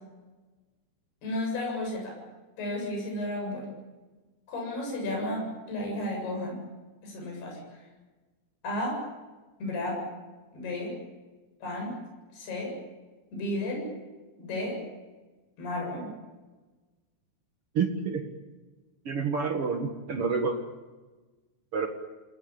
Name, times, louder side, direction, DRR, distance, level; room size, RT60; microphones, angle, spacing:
voice 1, 1.2-2.2 2.6-3.7 4.5-6.6 7.0-7.8 8.6-9.0 9.6-10.0 10.5-10.9 11.6-11.9 12.3-12.7 13.3-13.9 14.4-14.8 15.6-16.1, left 1 dB, 55° left, 0 dB, 9.6 m, -33 dB
voice 2, 17.7-18.2 19.0-20.5 21.7-21.9, right 5 dB, 85° right, 3 dB, 1.2 m, -28 dB
29.0 x 19.0 x 8.7 m, 1.2 s
omnidirectional pair, 5.5 m